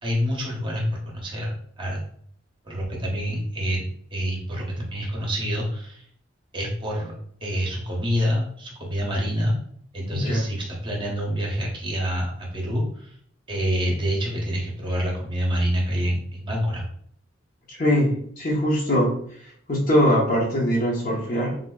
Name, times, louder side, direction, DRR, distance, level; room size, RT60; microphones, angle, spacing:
voice 1, 0.0-2.0 2.6-3.8 4.1-6.1 6.5-7.1 7.4-9.5 9.9-13.1 13.5-16.8, equal, 25° right, -3 dB, 0.8 m, -27 dB
voice 2, 10.1-10.5 17.7-19.2 19.7-21.7, equal, 45° left, -3 dB, 0.8 m, -22 dB
3.8 x 2.6 x 2.3 m, 0.63 s
head